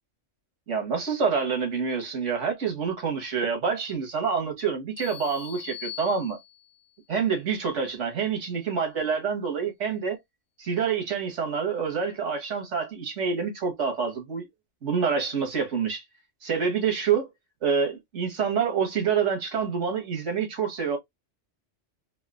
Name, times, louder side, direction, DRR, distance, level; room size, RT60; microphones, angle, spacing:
voice 1, 0.7-6.4 7.1-10.2 10.6-14.5 14.8-16.0 16.4-17.3 17.6-21.0, right 6 dB, 90° right, 1.7 m, -27 dB
sound 1, 5.0-6.9, left 10 dB, 90° left, 1.3 m, -41 dB
4.0 x 2.4 x 2.4 m
omnidirectional pair, 1.2 m